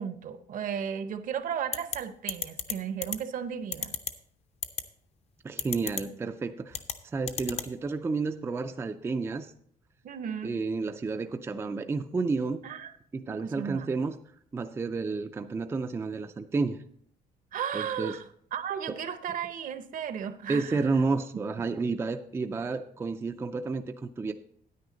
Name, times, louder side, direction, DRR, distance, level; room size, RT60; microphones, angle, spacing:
voice 1, 0.0-3.9 10.0-10.5 12.6-12.9 13.2-14.0 17.5-18.2 18.5-20.9, right 8 dB, 55° right, 11 dB, 0.7 m, -35 dB
sound 1, 1.7-2.0 2.3-2.7 3.0-3.2 3.7-4.1 4.6-4.8 5.6-6.0 6.7-6.9 7.3-7.7, left 6 dB, 40° left, 0.7 m, -31 dB
voice 2, 5.4-6.8 7.1-9.5 10.4-12.6 13.1-14.2 14.5-16.8 17.7-18.2 18.9-19.0 20.5-24.3, right 4 dB, 15° right, 7 dB, 0.3 m, -31 dB
9.4 x 9.4 x 3.9 m, 0.64 s
cardioid pair, 150°, 16 cm